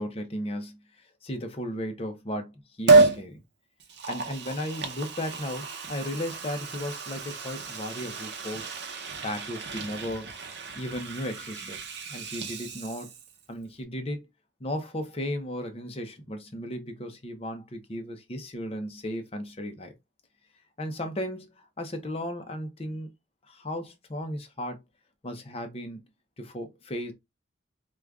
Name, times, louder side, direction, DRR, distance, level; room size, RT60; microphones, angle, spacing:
voice 1, 0.0-3.4 4.1-8.7 9.2-10.3 10.8-11.8 12.1-13.1 13.5-14.2 14.6-19.9 20.8-23.1 23.5-24.8 25.2-26.0 26.4-27.1, equal, 30° left, 0.7 m, -35 dB
Liquid, 2.9-3.2 3.8-13.4 13.8-13.9, right 3 dB, 60° right, 0.7 m, -28 dB
4.9 x 2.3 x 2.4 m
head